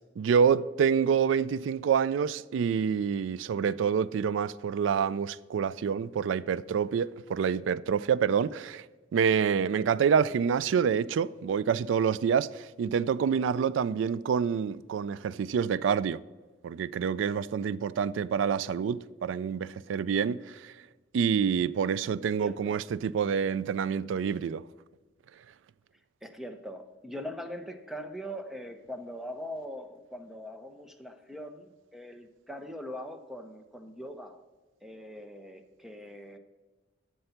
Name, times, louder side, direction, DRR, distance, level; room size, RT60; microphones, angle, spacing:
voice 1, 0.2-8.8 9.1-16.2 16.6-20.7 21.1-24.6, right 7 dB, 75° right, 0.3 m, -27 dB
voice 2, 22.4-22.8 26.2-34.4 34.8-36.4, equal, ahead, 0.6 m, -41 dB
7.8 x 6.9 x 5.7 m
head